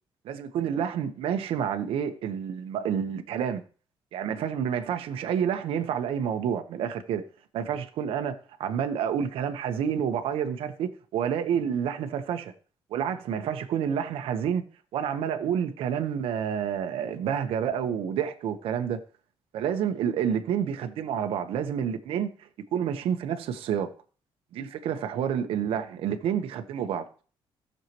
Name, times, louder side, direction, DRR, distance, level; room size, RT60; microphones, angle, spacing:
voice 1, 0.2-3.6 4.1-7.2 7.5-12.5 12.9-14.6 14.9-19.0 19.5-23.9 24.5-27.1, right 8 dB, 80° right, 1.0 m, -29 dB
17.5 x 6.6 x 3.0 m
cardioid pair, 130°, 9 cm